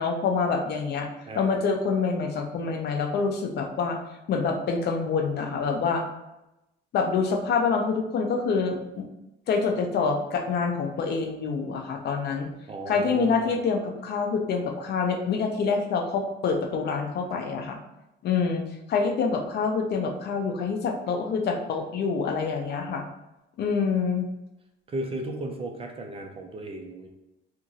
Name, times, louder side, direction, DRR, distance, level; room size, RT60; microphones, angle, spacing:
voice 1, 0.0-1.1 1.4-4.0 4.3-6.0 6.9-9.1 9.5-12.5 12.9-17.8 18.2-23.0 23.6-24.3, left 5 dB, 55° left, 4 dB, 0.5 m, -26 dB
voice 2, 12.7-13.5 24.9-27.1, right 2 dB, 30° right, 3 dB, 0.4 m, -35 dB
2.9 x 2.5 x 2.7 m, 0.93 s
cardioid pair, 140°, 20 cm